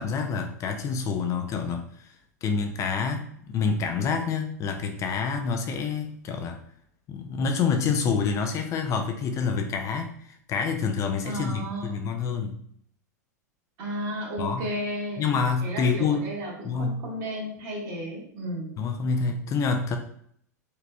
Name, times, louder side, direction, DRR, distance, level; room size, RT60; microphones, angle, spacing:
voice 1, 0.0-2.1 2.4-6.6 7.1-12.6 14.4-14.7 15.2-16.3 16.6-17.0 18.8-20.0, left 5 dB, 35° left, 5 dB, 0.4 m, -27 dB
voice 2, 11.2-12.1 13.8-15.2 15.6-18.7, equal, 45° right, -3 dB, 1.4 m, -33 dB
4.1 x 2.9 x 2.2 m, 0.66 s
hypercardioid pair, 95°, 9 cm